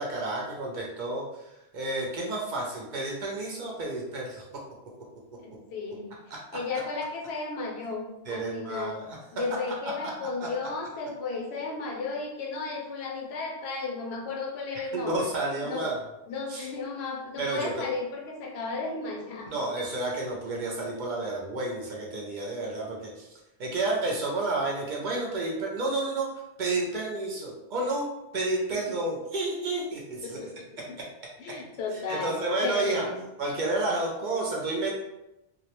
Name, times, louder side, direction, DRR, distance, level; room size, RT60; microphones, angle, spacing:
voice 1, 0.0-4.4 6.3-6.4 8.3-9.2 10.4-10.5 14.8-16.0 16.5-16.7 17.4-17.9 19.5-26.3 26.6-28.1 28.3-30.4 31.0-31.1 31.9-33.1 33.4-34.9, right 2 dB, 60° right, -2 dB, 0.6 m, -31 dB
voice 2, 5.4-6.2 6.5-9.0 9.3-15.3 15.6-15.9 16.3-19.5 28.7-28.8 30.2-31.0 31.4-32.3 32.6-33.2, left 3 dB, 85° left, 0 dB, 0.9 m, -34 dB
2.3 x 2.1 x 2.9 m, 0.92 s
omnidirectional pair, 1.0 m